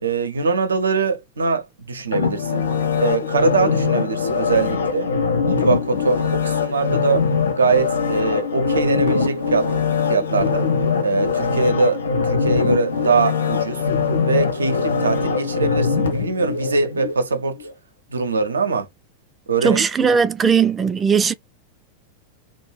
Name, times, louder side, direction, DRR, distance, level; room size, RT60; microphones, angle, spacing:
voice 1, 0.0-2.7 3.0-5.1 5.4-7.3 7.6-9.7 10.1-10.7 11.0-13.8 14.2-17.7 18.1-18.9 19.5-20.1, right 4 dB, 75° right, 0.5 m, -22 dB
sound 1, 2.1-17.2 17.6-17.7, left 5 dB, 65° left, 0.5 m, -22 dB
voice 2, 19.6-21.3, right 6 dB, 20° right, 0.3 m, -18 dB
2.3 x 2.0 x 3.0 m
figure-of-eight pair, 90°, 0 cm